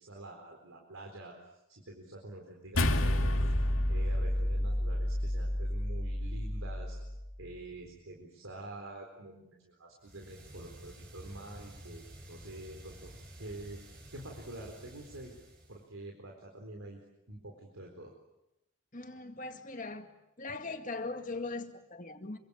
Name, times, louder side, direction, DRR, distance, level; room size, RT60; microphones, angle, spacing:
voice 1, 0.0-3.5 3.9-7.0 7.4-13.1 13.4-15.3 15.7-17.0 17.3-18.2, right 2 dB, 85° right, 1 dB, 4.2 m, -47 dB
sound 1, 2.7-7.3, left 1 dB, 85° left, 2.4 m, -30 dB
sound 2, 10.0-15.9, right 1 dB, 50° right, 6.3 m, -51 dB
voice 2, 18.9-20.1 20.4-22.4, left 3 dB, 40° left, 6 dB, 2.1 m, -40 dB
26.0 x 24.5 x 8.7 m, 0.92 s
head